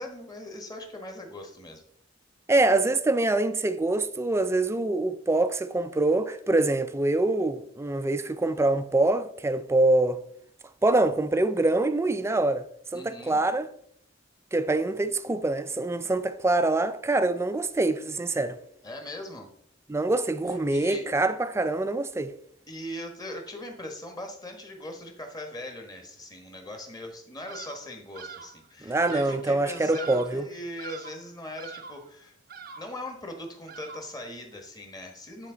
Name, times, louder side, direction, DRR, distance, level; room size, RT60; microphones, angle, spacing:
voice 1, 0.0-1.8 12.9-13.4 18.8-19.5 20.7-21.1 22.7-32.4 32.8-35.5, left 1 dB, 20° left, 1.2 m, -40 dB
voice 2, 2.5-10.2 10.8-12.6 12.9-13.7 14.5-18.6 19.9-22.3 28.8-30.4, right 2 dB, 15° right, 0.4 m, -25 dB
Bird vocalization bird call bird song, 27.5-27.9 28.1-28.6 29.0-29.5 29.9-30.4 30.8-31.2 31.6-32.1 32.5-33.0 33.7-34.2, right 6 dB, 50° right, 0.6 m, -43 dB
9.4 x 4.2 x 3.8 m
head